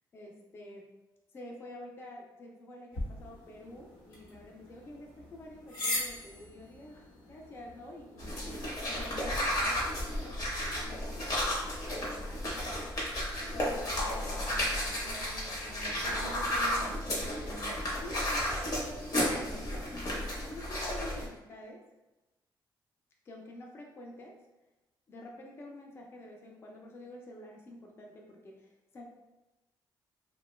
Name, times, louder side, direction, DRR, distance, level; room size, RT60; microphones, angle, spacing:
voice 1, 0.1-0.9 1.3-8.6 8.8-11.5 11.9-12.9 13.4-14.7 15.0-15.4 18.0-20.2 20.5-21.8 23.3-24.4 25.1-29.0, left 1 dB, 30° left, -1 dB, 0.4 m, -49 dB
sound 1, 2.9-9.4, left 1 dB, 80° left, 0.9 m, -41 dB
sound 2, 8.2-21.3, left 1 dB, 45° left, 0.8 m, -33 dB
voice 2, 14.5-17.8, right 3 dB, 85° right, -1 dB, 0.4 m, -47 dB
2.9 x 2.1 x 3.0 m, 1.0 s
cardioid pair, 165°, 8 cm